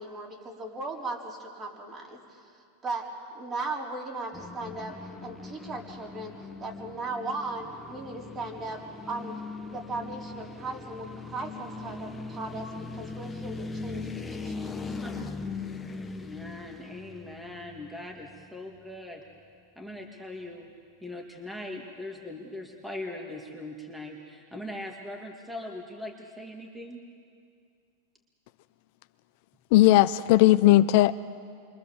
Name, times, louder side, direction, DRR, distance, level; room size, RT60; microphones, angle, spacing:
voice 1, 0.0-2.4 2.8-3.1 3.3-6.3 6.6-8.8 9.1-12.7 12.9-14.8, right 3 dB, 25° right, -1 dB, 4.6 m, -37 dB
sound 1, 4.3-18.5, left 4 dB, 10° left, 1.3 m, -40 dB
voice 2, 15.9-19.2 19.8-20.7 21.0-27.0, left 1 dB, 5° right, 1 dB, 2.1 m, -40 dB
voice 3, 29.7-31.1, left 16 dB, 55° left, 13 dB, 0.6 m, -18 dB
28.5 x 24.0 x 7.2 m, 2.3 s
supercardioid pair, 130°, 0 cm